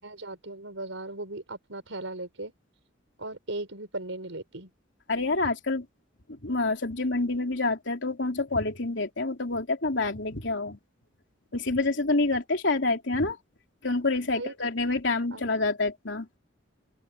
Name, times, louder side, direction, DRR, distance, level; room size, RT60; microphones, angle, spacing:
voice 1, 0.0-2.5 3.2-4.7 14.3-14.5 15.3-15.5, right 2 dB, 90° right, 5.0 m, -37 dB
voice 2, 5.1-5.9 6.3-10.8 11.5-13.4 13.8-16.4, left 3 dB, 70° left, 3.5 m, -27 dB
open air
head